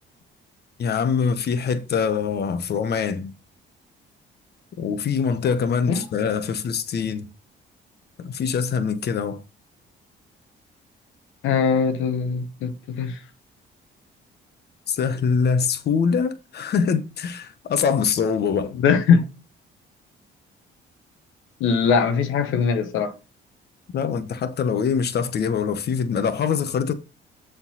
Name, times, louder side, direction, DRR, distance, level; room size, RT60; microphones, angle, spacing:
voice 1, 0.8-3.3 4.8-7.3 8.2-9.4 14.9-18.7 23.9-26.9, left 6 dB, 55° left, 1.0 m, -24 dB
voice 2, 11.4-13.2 18.8-19.2 21.6-23.1, left 6 dB, 85° left, 1.0 m, -21 dB
7.3 x 3.8 x 5.5 m
cardioid pair, 90°, 20 cm